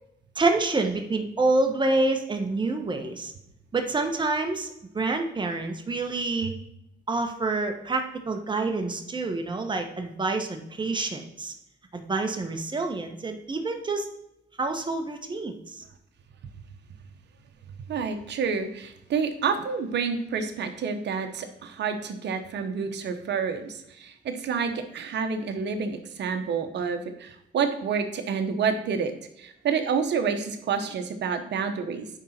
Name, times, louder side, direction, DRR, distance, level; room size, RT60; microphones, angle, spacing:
voice 1, 0.4-3.3 3.7-6.5 7.1-11.5 11.9-14.1 14.6-15.8, right 3 dB, 25° right, 4 dB, 1.2 m, -27 dB
voice 2, 17.9-29.1 29.4-32.1, right 6 dB, 60° right, 6 dB, 1.1 m, -29 dB
9.9 x 3.9 x 4.4 m, 0.81 s
cardioid pair, 90°, 20 cm